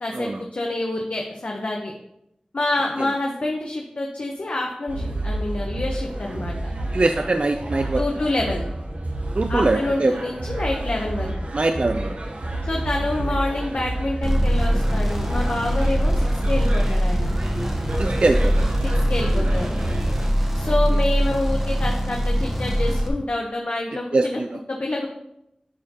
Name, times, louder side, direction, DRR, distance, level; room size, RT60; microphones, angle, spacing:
voice 1, 0.0-1.9 2.5-6.5 8.0-8.6 9.5-11.3 12.6-17.3 18.8-19.8 20.5-24.4 24.7-25.1, left 2 dB, 70° left, 0 dB, 0.8 m, -27 dB
sound 1, 4.9-20.3, right 1 dB, 70° right, 1.0 m, -29 dB
voice 2, 6.9-8.0 9.3-10.2 11.5-12.3 18.0-18.7 20.6-20.7 24.1-24.6, right 2 dB, 55° right, 6 dB, 0.3 m, -22 dB
sound 2, 14.2-23.1, equal, 10° right, 1.3 m, -22 dB
10.5 x 4.4 x 2.9 m, 0.81 s
wide cardioid pair, 65°, 2 cm